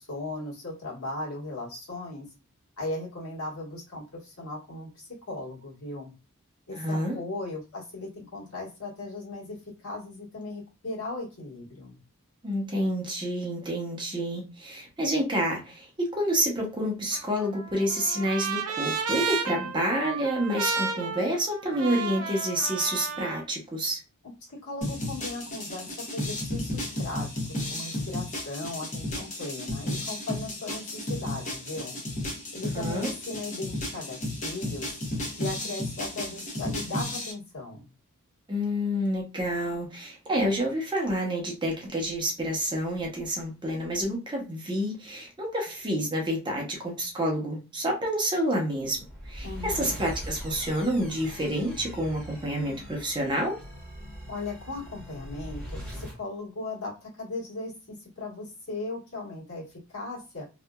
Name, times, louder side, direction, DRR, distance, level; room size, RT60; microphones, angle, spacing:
voice 1, 0.0-2.3 2.8-6.1 6.7-12.0 24.5-32.0 32.5-35.0 35.4-37.8 49.4-49.9 54.3-60.4, left 2 dB, 70° left, -4 dB, 1.5 m, -37 dB
voice 2, 6.7-7.2 12.4-24.0 32.7-33.1 38.5-49.0 49.2-53.6, equal, 20° right, -1 dB, 0.7 m, -28 dB
Trumpet, 17.1-23.4, right 5 dB, 85° right, 0.6 m, -32 dB
sound 1, 24.8-37.3, left 1 dB, 35° left, 0.7 m, -33 dB
sound 2, 48.8-56.2, equal, 5° left, 1.0 m, -41 dB
2.9 x 2.3 x 2.2 m, 0.29 s
head